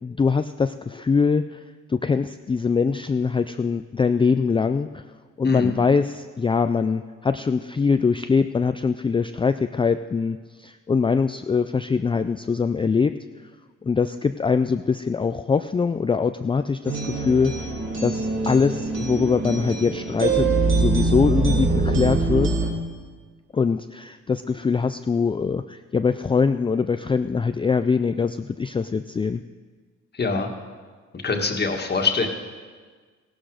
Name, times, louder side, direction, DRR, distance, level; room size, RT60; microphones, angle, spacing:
voice 1, 0.0-1.6 1.9-5.0 5.4-13.1 13.8-17.7 18.0-20.5 20.7-22.5 23.5-29.4, left 5 dB, 15° left, 9 dB, 0.4 m, -23 dB
sound 1, 16.8-22.7, right 3 dB, 40° right, 2.9 m, -23 dB
voice 2, 30.1-30.5 31.1-32.3, left 4 dB, 35° left, 3 dB, 1.8 m, -24 dB
16.0 x 12.5 x 5.0 m, 1.5 s
cardioid pair, 90°, 30 cm